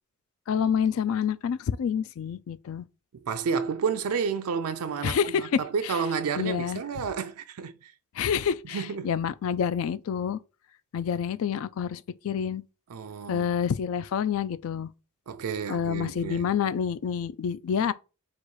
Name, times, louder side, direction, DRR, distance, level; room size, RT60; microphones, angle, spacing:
voice 1, 0.5-2.8 5.0-6.0 6.3-6.8 8.1-10.4 10.9-12.6 13.3-14.9 15.7-17.9, left 7 dB, 70° left, 0.3 m, -28 dB
voice 2, 3.2-7.9 8.7-9.1 12.9-13.5 15.3-16.5, right 6 dB, 85° right, 0.4 m, -30 dB
4.0 x 2.4 x 4.6 m
head